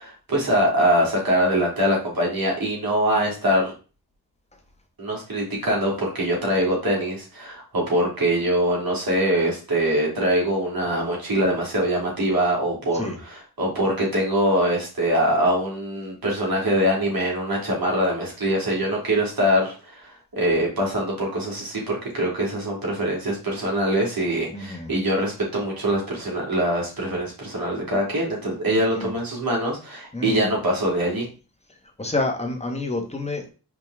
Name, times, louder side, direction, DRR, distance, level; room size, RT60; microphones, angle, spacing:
voice 1, 0.0-3.7 5.0-31.3, equal, 65° right, -3 dB, 3.3 m, -23 dB
voice 2, 24.5-24.9 28.9-29.1 30.1-30.5 32.0-33.5, left 2 dB, 15° left, 3 dB, 1.3 m, -28 dB
5.4 x 5.0 x 3.6 m, 0.34 s
wide cardioid pair, 120°, 37 cm